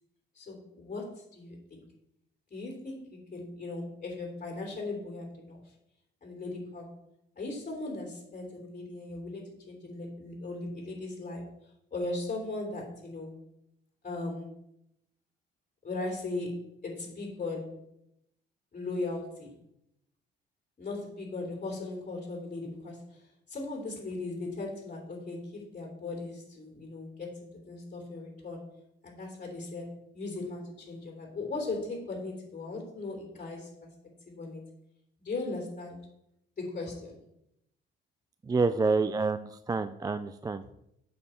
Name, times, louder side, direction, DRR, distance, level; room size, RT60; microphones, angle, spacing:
voice 1, 0.3-1.8 2.5-5.6 6.2-6.9 7.3-11.4 11.9-13.3 14.0-14.5 15.8-17.8 18.7-19.5 20.8-23.2 23.5-28.7 29.0-33.7 34.3-34.6 35.2-36.0 36.6-37.2 40.6-40.7, left 2 dB, 40° left, 0 dB, 3.3 m, -38 dB
voice 2, 38.4-40.6, right 4 dB, 20° right, 11 dB, 0.4 m, -28 dB
8.7 x 6.5 x 4.4 m, 0.79 s
cardioid pair, 90°, 20 cm